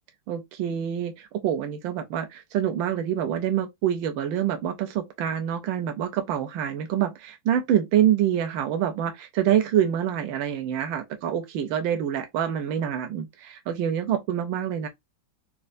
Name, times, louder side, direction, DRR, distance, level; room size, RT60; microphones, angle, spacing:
voice 1, 0.3-14.9, right 10 dB, 75° right, 1.3 m, -26 dB
4.4 x 2.2 x 2.5 m
omnidirectional pair, 2.2 m